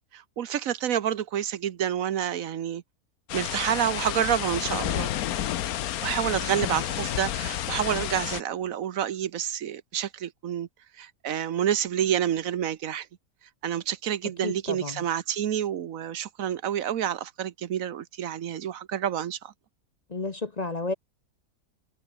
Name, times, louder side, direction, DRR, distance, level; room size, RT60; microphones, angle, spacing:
voice 1, 0.0-2.8 3.3-5.1 6.0-10.7 11.0-13.1 13.6-19.5, right 10 dB, 75° right, 1.3 m, -28 dB
sound 1, 3.3-8.4, left 12 dB, 90° left, 1.3 m, -30 dB
voice 2, 14.4-15.0 20.1-20.9, left 3 dB, 30° left, 1.0 m, -31 dB
omnidirectional pair, 1.5 m